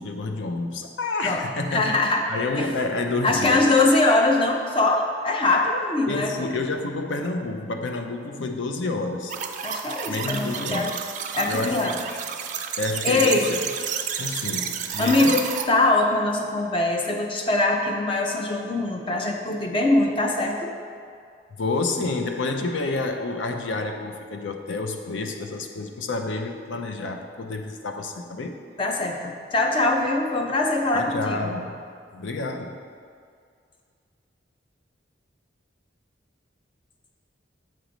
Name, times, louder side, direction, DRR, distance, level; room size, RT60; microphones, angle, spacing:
voice 1, 0.0-1.9 2.3-3.7 6.1-9.4 10.1-11.0 11.5-12.3 12.8-13.6 14.2-15.4 21.6-28.6 30.9-31.9 32.1-32.8, left 3 dB, 80° left, 5 dB, 0.5 m, -29 dB
voice 2, 1.7-2.2 2.6-2.7 3.2-6.4 9.6-10.9 11.3-12.0 13.0-13.5 14.4-14.5 15.0-20.8 28.8-31.5, left 2 dB, 30° left, 2 dB, 0.5 m, -22 dB
sound 1, 9.3-15.6, right 8 dB, 40° right, 0.3 m, -31 dB
7.4 x 3.1 x 5.1 m, 2.2 s
head